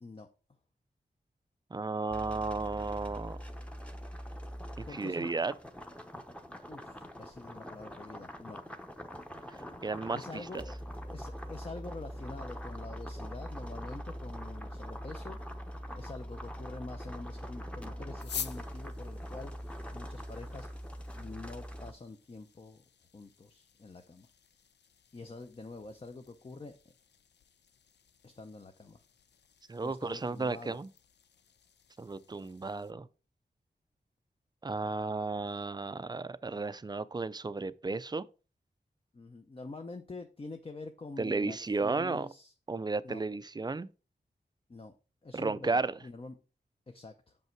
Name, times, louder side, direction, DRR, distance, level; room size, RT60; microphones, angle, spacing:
voice 1, 1.7-3.4 4.8-5.5 9.8-10.6 29.7-30.9 32.0-33.1 34.6-38.2 41.2-42.3 42.7-43.9 45.3-46.0, right 3 dB, 25° right, 0.4 m, -33 dB
sound 1, 2.1-21.9, equal, 5° left, 0.9 m, -43 dB
voice 2, 4.9-5.3 6.7-8.8 10.1-10.8 11.0-15.4 15.9-19.5 19.9-20.7 21.1-22.8 23.1-24.3 25.1-26.8 28.2-29.0 29.8-30.8 39.1-42.5 43.0-43.2 44.7-44.9 45.2-46.4 46.9-47.4, left 3 dB, 35° left, 0.7 m, -46 dB
sound 2, 18.2-32.9, left 7 dB, 90° left, 0.5 m, -50 dB
6.6 x 5.5 x 4.5 m
wide cardioid pair, 100°, 17 cm